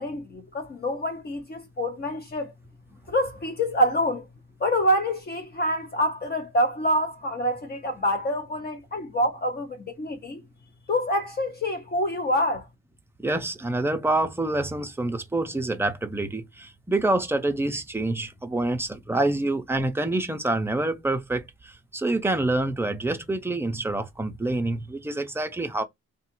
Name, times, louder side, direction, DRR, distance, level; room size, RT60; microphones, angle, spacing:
voice 1, 0.0-2.5 3.1-4.3 4.6-10.4 10.9-12.7, equal, 35° left, 0.7 m, -26 dB
voice 2, 13.2-25.8, right 2 dB, 10° right, 0.4 m, -27 dB
3.7 x 2.4 x 4.3 m
wide cardioid pair, 170°, 30 cm